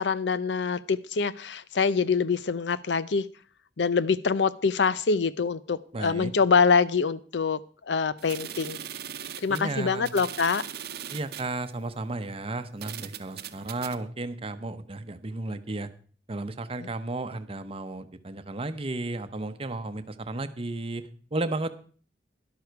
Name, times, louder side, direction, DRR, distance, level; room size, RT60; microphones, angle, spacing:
voice 1, 0.0-3.3 3.8-7.6 7.9-8.8 9.4-10.6, left 5 dB, 90° left, 17 dB, 0.6 m, -25 dB
voice 2, 5.9-6.3 9.5-10.1 11.1-15.9 16.3-21.7, right 2 dB, 35° right, 9 dB, 0.8 m, -33 dB
sound 1, 8.2-11.5 12.3-12.4 12.8-14.0, right 9 dB, 60° right, 0.8 m, -39 dB
12.0 x 11.5 x 4.6 m, 0.43 s
head